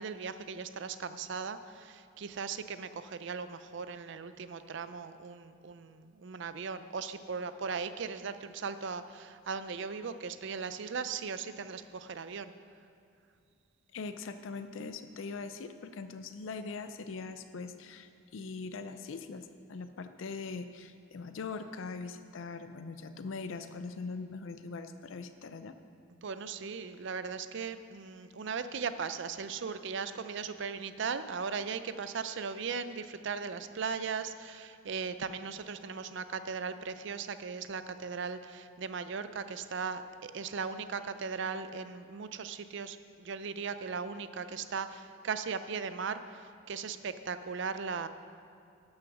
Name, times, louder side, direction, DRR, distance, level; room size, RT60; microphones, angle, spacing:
voice 1, 0.0-12.5 26.2-48.1, right 5 dB, 60° right, 12 dB, 0.5 m, -38 dB
voice 2, 13.9-25.8, left 4 dB, 70° left, 10 dB, 0.5 m, -41 dB
12.5 x 6.4 x 5.9 m, 2.5 s
head